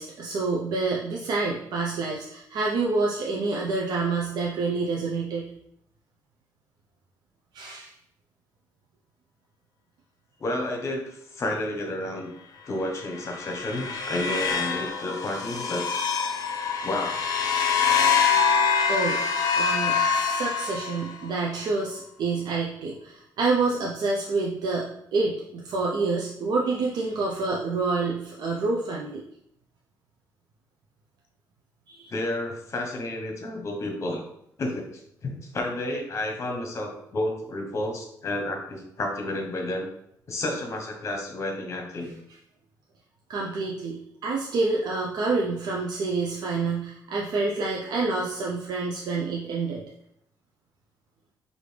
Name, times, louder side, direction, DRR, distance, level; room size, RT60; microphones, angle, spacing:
voice 1, 0.0-5.5 7.5-7.9 18.9-19.3 19.6-29.2 31.9-32.1 43.3-49.8, right 3 dB, 70° right, -2 dB, 0.5 m, -28 dB
voice 2, 10.4-12.3 12.7-15.8 16.8-17.2 32.1-34.2 34.6-34.9 35.2-39.9 40.3-42.1, left 1 dB, 40° left, 2 dB, 0.9 m, -31 dB
sound 1, 13.0-21.3, left 6 dB, 55° left, 0.6 m, -25 dB
4.8 x 2.6 x 3.3 m, 0.72 s
cardioid pair, 130°, 7 cm